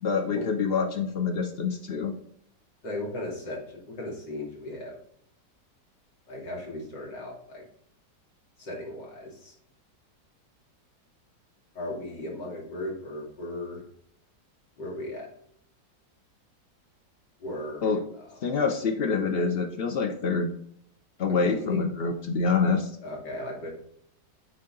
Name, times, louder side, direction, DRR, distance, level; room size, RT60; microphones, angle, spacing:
voice 1, 0.0-2.1 17.8-18.0 18.4-20.5 21.2-22.9, left 5 dB, 90° left, 4 dB, 0.5 m, -26 dB
voice 2, 2.8-3.6 3.9-5.0 6.3-7.6 8.6-9.5 11.7-13.8 14.8-15.3 17.4-18.2 21.3-21.9 23.0-23.7, left 1 dB, 70° left, -3 dB, 3.1 m, -36 dB
9.3 x 3.9 x 3.8 m, 0.69 s
omnidirectional pair, 2.0 m